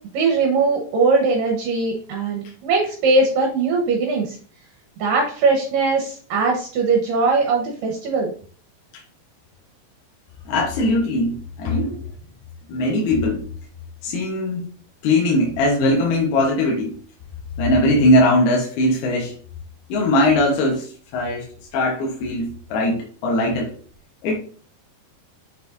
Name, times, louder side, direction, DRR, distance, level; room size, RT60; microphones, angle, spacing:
voice 1, 0.1-4.4 5.0-8.3, right 3 dB, 70° right, 2.5 m, -20 dB
voice 2, 10.5-12.0 12.7-13.5 14.0-14.7 15.0-17.0 17.6-19.3 19.9-23.7 24.2-24.4, left 1 dB, 75° left, 3.1 m, -20 dB
7.1 x 6.4 x 2.6 m
omnidirectional pair, 4.6 m